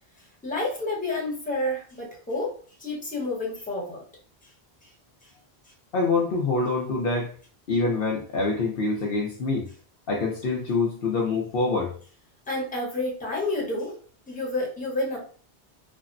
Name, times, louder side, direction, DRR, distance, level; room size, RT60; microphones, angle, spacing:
voice 1, 0.4-2.5 2.8-4.0 4.8-4.9 12.5-13.9 14.3-15.2, left 2 dB, 10° left, -4 dB, 0.9 m, -29 dB
voice 2, 5.9-7.3 7.7-9.7 10.1-11.9, left 3 dB, 65° left, -1 dB, 0.7 m, -25 dB
3.4 x 2.0 x 2.5 m, 0.42 s
omnidirectional pair, 1.1 m